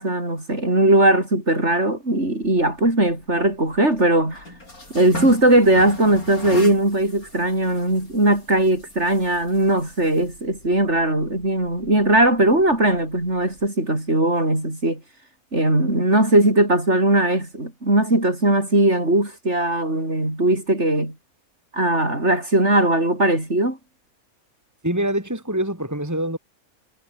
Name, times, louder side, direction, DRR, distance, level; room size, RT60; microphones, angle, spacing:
voice 1, 0.0-4.4 4.9-15.0 15.5-21.1 21.7-23.8, right 1 dB, 50° right, 7.1 m, -19 dB
sound 1, 2.4-13.7, left 2 dB, 80° left, 8.2 m, -39 dB
voice 2, 24.8-26.4, right 1 dB, 10° right, 3.8 m, -24 dB
omnidirectional pair, 1.5 m